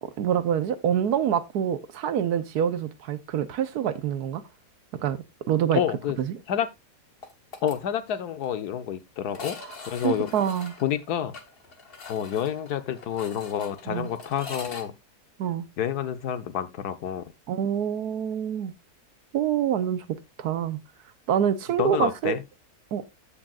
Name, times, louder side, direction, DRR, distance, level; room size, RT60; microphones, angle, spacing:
voice 1, 0.0-4.4 4.9-5.2 5.5-5.8 6.2-6.4 10.0-10.7 13.9-14.1 15.4-15.7 17.5-18.7 19.3-20.0 20.4-20.8 21.3-22.4 22.9-23.0, right 9 dB, 80° right, 1.3 m, -26 dB
voice 2, 5.7-6.2 6.5-6.7 7.6-9.6 9.9-10.3 10.8-11.3 12.1-14.9 15.8-17.2 21.8-22.4, left 9 dB, 90° left, 1.4 m, -28 dB
sound 1, 7.2-7.8 8.1-8.2 8.4-8.5 9.3-14.9, left 4 dB, 40° left, 1.3 m, -43 dB
15.0 x 5.2 x 2.4 m
omnidirectional pair, 1.6 m